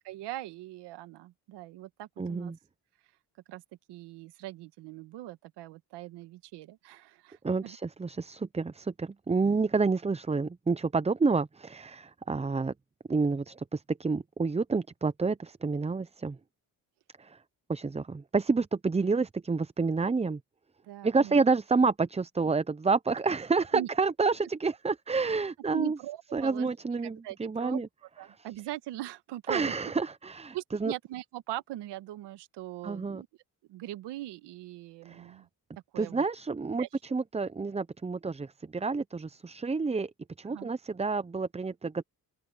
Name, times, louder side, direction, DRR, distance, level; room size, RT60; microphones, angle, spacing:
voice 1, 0.0-2.5 3.5-3.6 3.9-7.8 20.9-21.4 23.7-23.9 25.7-26.7 27.0-27.8 28.2-29.7 30.5-33.3 33.7-35.5 35.9-36.2 36.8-36.9 40.5-40.7, right 15 dB, 85° right, 1.6 m, -40 dB
voice 2, 2.2-2.6 7.4-12.7 13.1-16.4 17.2-17.4 17.7-20.4 21.0-26.0 26.3-27.9 28.3-28.5 29.5-30.9 32.8-33.2 35.0-35.4 36.0-40.1 40.4-42.0, right 4 dB, 15° right, 0.6 m, -29 dB
supercardioid pair, 60°, 40 cm